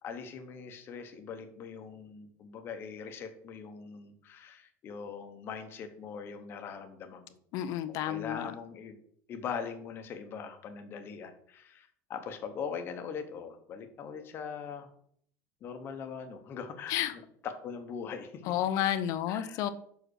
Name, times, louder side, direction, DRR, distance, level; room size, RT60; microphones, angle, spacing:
voice 1, 0.0-7.3 8.0-9.0 9.3-14.9 15.6-18.4 19.3-19.7, left 6 dB, 30° left, 7 dB, 1.0 m, -41 dB
voice 2, 7.5-8.5 16.9-17.1 18.5-19.7, left 11 dB, 45° left, 12 dB, 0.6 m, -31 dB
6.0 x 5.1 x 6.3 m, 0.64 s
cardioid pair, 175°, 8 cm